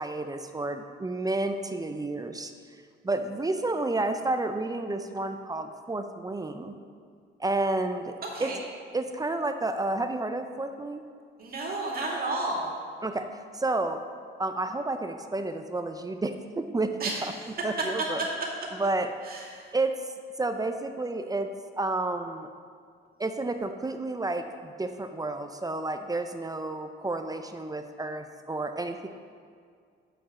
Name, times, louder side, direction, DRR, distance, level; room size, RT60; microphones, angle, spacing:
voice 1, 0.0-2.5 3.0-6.7 7.4-8.5 8.9-11.1 13.0-14.0 14.4-17.3 17.6-18.2 18.8-19.1 19.7-20.0 20.4-21.5 21.8-22.5 23.2-29.1, right 2 dB, 20° right, 7 dB, 0.5 m, -31 dB
voice 2, 11.4-12.7 17.0-17.3 19.2-19.8, right 2 dB, 50° right, -2 dB, 2.3 m, -32 dB
7.5 x 5.3 x 7.1 m, 2.2 s
cardioid pair, 90°, 20 cm